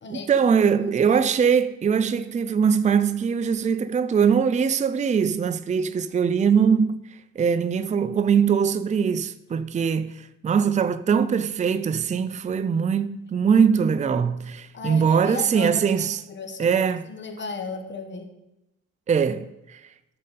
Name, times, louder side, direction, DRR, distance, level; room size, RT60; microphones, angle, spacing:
voice 1, 0.1-7.0 7.4-16.2 16.6-17.1 19.1-19.8, right 6 dB, 25° right, 0.5 m, -22 dB
voice 2, 14.7-16.7 17.1-18.3, left 4 dB, 40° left, 1.3 m, -35 dB
13.0 x 6.6 x 4.2 m
cardioid pair, 90°, 30 cm